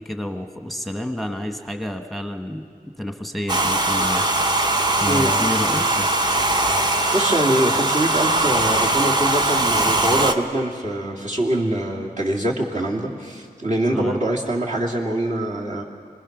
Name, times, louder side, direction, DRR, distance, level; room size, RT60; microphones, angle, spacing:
voice 1, 0.0-2.6 3.0-4.2 5.0-6.1 13.9-14.2, left 1 dB, ahead, 4 dB, 1.4 m, -29 dB
Domestic sounds home sounds, 3.5-10.3, right 2 dB, 25° right, 1.1 m, -20 dB
voice 2, 7.1-15.8, right 1 dB, 45° right, -3 dB, 2.8 m, -24 dB
25.5 x 20.5 x 6.1 m, 2.2 s
wide cardioid pair, 95°, 16 cm